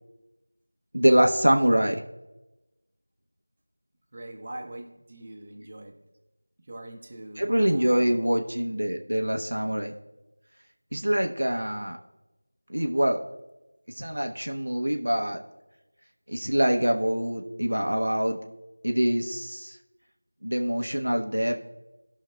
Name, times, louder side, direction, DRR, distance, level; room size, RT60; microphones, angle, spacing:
voice 1, 0.9-2.0 7.4-9.9 10.9-12.0 12.7-13.2 14.0-15.4 16.3-18.4 18.8-19.8 20.4-21.5, equal, 80° right, 3 dB, 1.1 m, -24 dB
voice 2, 4.1-6.0 6.6-8.2, right 1 dB, 30° right, 2 dB, 1.1 m, -42 dB
18.0 x 6.2 x 2.3 m, 1.0 s
figure-of-eight pair, 175°, 0 cm